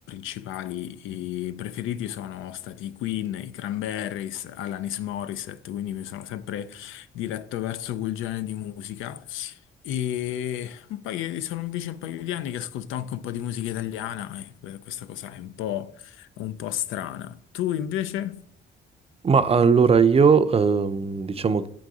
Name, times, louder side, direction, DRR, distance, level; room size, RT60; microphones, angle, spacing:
voice 1, 0.1-9.6 9.8-18.4, left 11 dB, 85° left, 0.4 m, -32 dB
voice 2, 19.2-21.7, right 5 dB, 30° right, 0.5 m, -19 dB
7.4 x 3.9 x 4.8 m
cardioid pair, 90°, 20 cm